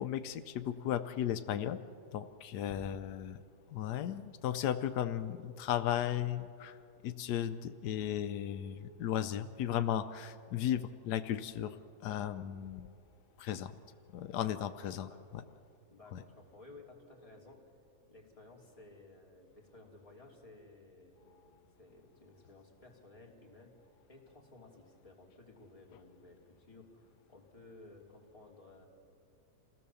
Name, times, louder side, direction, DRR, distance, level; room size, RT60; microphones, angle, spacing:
voice 1, 0.0-1.8 2.1-3.4 3.7-6.8 7.0-11.8 12.0-12.9 13.4-13.7 14.1-15.4 16.1-16.2, left 10 dB, 85° left, 11 dB, 1.3 m, -35 dB
voice 2, 15.9-17.6 18.1-28.9, left 2 dB, 20° left, -1 dB, 3.1 m, -56 dB
28.0 x 17.0 x 7.0 m, 2.6 s
omnidirectional pair, 1.7 m